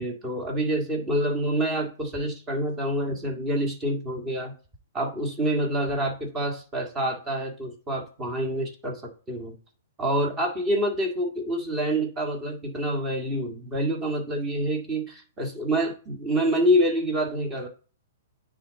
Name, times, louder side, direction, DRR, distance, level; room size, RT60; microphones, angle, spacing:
voice 1, 0.0-4.5 4.9-9.6 10.0-17.7, equal, 20° right, 2 dB, 1.8 m, -27 dB
9.7 x 3.9 x 3.8 m, 0.37 s
hypercardioid pair, 135°, 0 cm